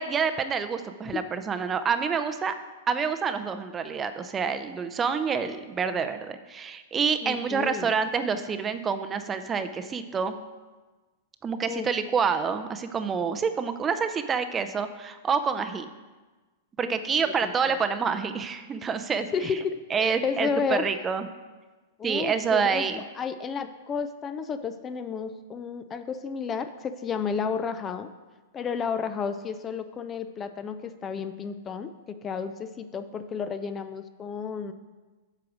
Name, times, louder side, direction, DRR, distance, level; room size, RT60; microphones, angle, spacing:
voice 1, 0.0-2.5 2.9-10.4 11.4-15.9 16.8-19.3 19.9-21.3 22.0-23.0, right 6 dB, 20° right, 9 dB, 0.5 m, -27 dB
voice 2, 7.2-7.9 11.6-11.9 16.8-17.0 17.2-17.8 19.3-20.9 22.0-28.1 28.5-34.7, left 6 dB, 25° left, 10 dB, 0.5 m, -32 dB
8.4 x 4.8 x 6.2 m, 1.3 s
hypercardioid pair, 105°, 0 cm